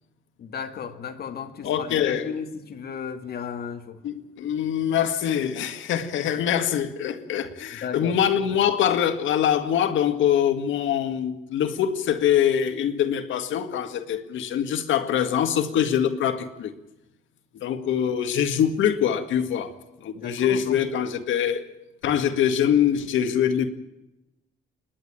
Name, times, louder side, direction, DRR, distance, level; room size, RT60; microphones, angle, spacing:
voice 1, 0.4-4.0 7.8-8.2 20.1-20.8, left 7 dB, 50° left, 7 dB, 2.5 m, -35 dB
voice 2, 1.6-2.3 4.0-16.7 17.5-19.7 20.0-21.6 22.0-23.7, left 9 dB, 70° left, 9 dB, 2.1 m, -24 dB
28.5 x 11.0 x 8.9 m, 0.94 s
cardioid pair, 145°, 20 cm